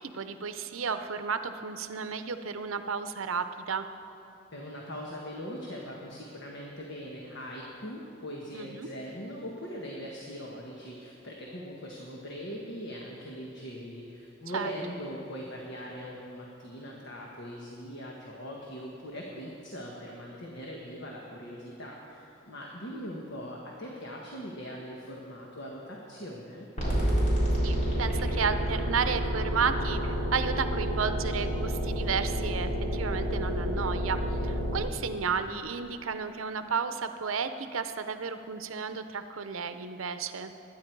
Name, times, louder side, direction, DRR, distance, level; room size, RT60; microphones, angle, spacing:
voice 1, 0.0-3.9 8.5-8.9 14.5-14.7 27.6-34.2 34.4-40.5, right 6 dB, 85° right, 10 dB, 0.7 m, -32 dB
voice 2, 4.5-26.7, equal, 60° left, -2 dB, 1.4 m, -41 dB
sound 1, 26.8-34.8, equal, 35° left, 3.9 m, -29 dB
21.5 x 9.6 x 4.6 m, 2.8 s
head